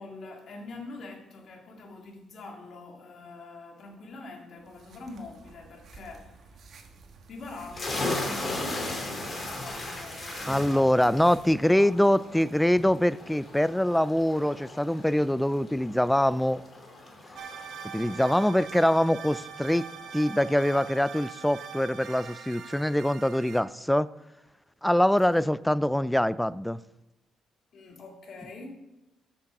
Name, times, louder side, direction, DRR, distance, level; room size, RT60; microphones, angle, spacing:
voice 1, 0.0-6.9 7.3-11.1 11.4-12.3 25.3-25.5 27.7-28.7, left 3 dB, 60° left, 2.1 m, -45 dB
sound 1, 4.6-11.6, right 4 dB, 60° right, 1.6 m, -52 dB
sound 2, 7.7-21.1, left 2 dB, 35° left, 2.8 m, -38 dB
voice 2, 10.5-16.6 17.9-19.9 20.1-24.1 24.8-26.8, left 1 dB, 5° left, 0.4 m, -24 dB
sound 3, 17.4-23.6, right 7 dB, 75° right, 1.1 m, -42 dB
13.5 x 6.0 x 4.9 m
cardioid pair, 90°, 0 cm